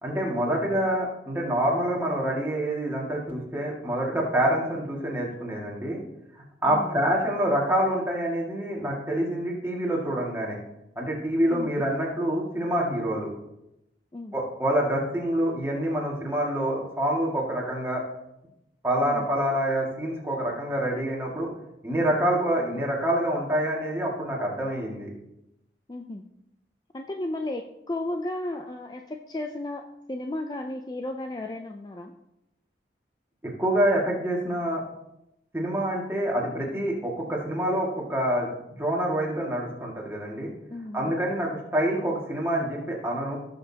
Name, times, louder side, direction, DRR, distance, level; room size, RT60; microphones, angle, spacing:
voice 1, 0.0-6.0 6.6-10.6 11.0-13.3 14.3-18.0 18.8-21.5 21.8-25.1 33.6-34.8 35.5-38.5 38.8-40.5 40.9-43.4, right 1 dB, 15° right, -3 dB, 2.0 m, -26 dB
voice 2, 6.6-7.0 11.5-11.7 14.1-14.3 19.0-19.3 22.6-22.8 25.9-26.2 26.9-32.1 40.7-41.2, left 1 dB, 20° left, 4 dB, 0.4 m, -34 dB
16.5 x 6.9 x 2.9 m, 0.87 s
head